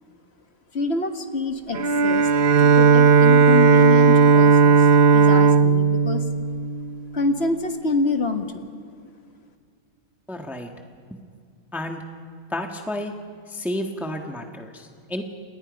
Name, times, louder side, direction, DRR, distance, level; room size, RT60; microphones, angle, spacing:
voice 1, 0.7-2.3 2.6-4.9 5.1-6.3 7.1-8.7, left 3 dB, 50° left, 6 dB, 1.7 m, -26 dB
Bowed string instrument, 1.7-7.3, right 5 dB, 45° right, 0.6 m, -16 dB
voice 2, 10.3-10.7 11.7-12.0 12.5-13.1 13.5-15.2, left 1 dB, ahead, 3 dB, 1.5 m, -31 dB
29.5 x 28.0 x 5.3 m, 2.1 s
omnidirectional pair, 1.5 m